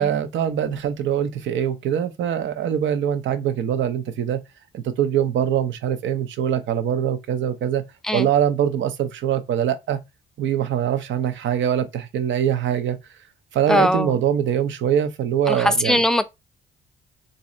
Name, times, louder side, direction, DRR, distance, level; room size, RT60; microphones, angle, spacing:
voice 1, 0.0-4.4 4.7-7.8 8.1-10.0 10.4-13.0 13.5-16.0, right 9 dB, 75° right, 0.7 m, -23 dB
voice 2, 13.7-14.1 15.5-16.2, equal, 5° left, 0.5 m, -20 dB
3.1 x 2.7 x 3.8 m
cardioid pair, 90°, 20 cm